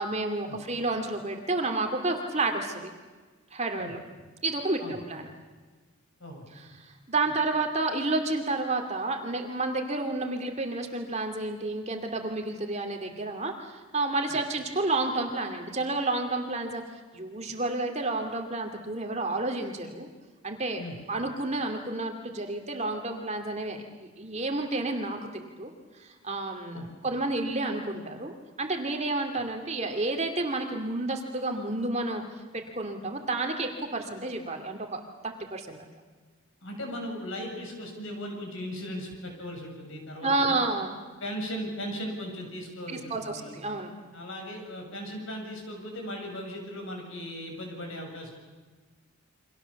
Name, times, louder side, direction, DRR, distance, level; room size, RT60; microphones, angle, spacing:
voice 1, 0.0-2.9 3.5-4.0 4.4-5.3 6.6-16.8 17.1-20.1 20.4-20.8 21.1-25.7 26.0-32.2 32.5-35.8 40.2-40.9 42.9-43.9, right 2 dB, 30° right, 4 dB, 2.4 m, -30 dB
voice 2, 36.6-40.6 41.2-43.5 44.1-48.3, equal, 60° left, 2 dB, 7.1 m, -37 dB
29.0 x 25.0 x 7.2 m, 1.4 s
head